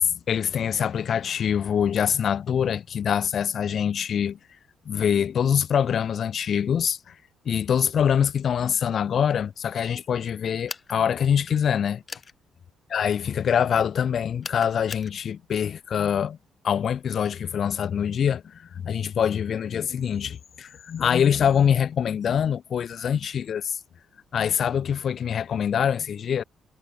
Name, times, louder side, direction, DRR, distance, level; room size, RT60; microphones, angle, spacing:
voice 1, 0.3-4.4 4.9-7.1 7.4-12.0 12.9-16.4 16.6-23.8 24.3-26.4, left 8 dB, 55° left, 2.8 m, -24 dB
sound 1, 10.7-11.0 12.1-12.3 14.4-15.1, left 5 dB, 35° left, 4.8 m, -37 dB
cardioid pair, 90°, 0 cm